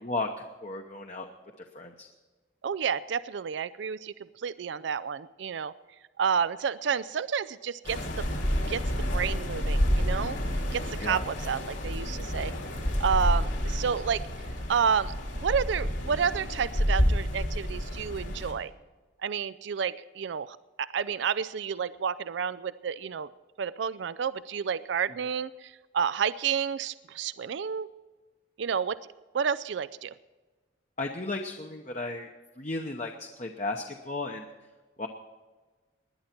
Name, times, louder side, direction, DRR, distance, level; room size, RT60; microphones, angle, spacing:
voice 1, 0.0-1.3 1.7-2.1 11.0-11.2 31.0-32.3 32.6-34.4 35.0-35.1, left 2 dB, 35° left, 3 dB, 0.9 m, -34 dB
voice 2, 2.6-5.7 6.2-8.4 8.7-10.4 10.7-12.5 13.0-14.2 14.7-18.7 19.2-23.3 23.6-27.9 28.6-29.0 29.3-30.1, right 7 dB, 70° right, 16 dB, 0.4 m, -30 dB
sound 1, 7.8-18.5, equal, 75° left, 3.2 m, -29 dB
20.0 x 10.5 x 4.5 m, 1.3 s
head